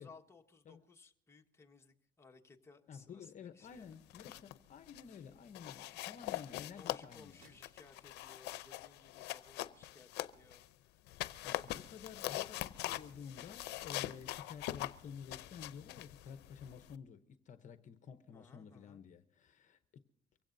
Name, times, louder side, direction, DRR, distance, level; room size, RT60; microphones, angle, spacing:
voice 1, 0.0-4.0 6.7-11.0 18.3-19.0, left 4 dB, 15° left, 1.5 m, -61 dB
voice 2, 2.9-7.5 11.4-20.0, left 7 dB, 45° left, 0.9 m, -52 dB
sound 1, 3.9-4.6 4.9-5.2 5.6-10.7 11.1-17.0, left 16 dB, 85° left, 0.6 m, -43 dB
sound 2, 7.0-10.1 10.5-10.6, right 3 dB, 65° right, 6.5 m, -71 dB
24.0 x 16.0 x 2.7 m
cardioid pair, 110°, 17 cm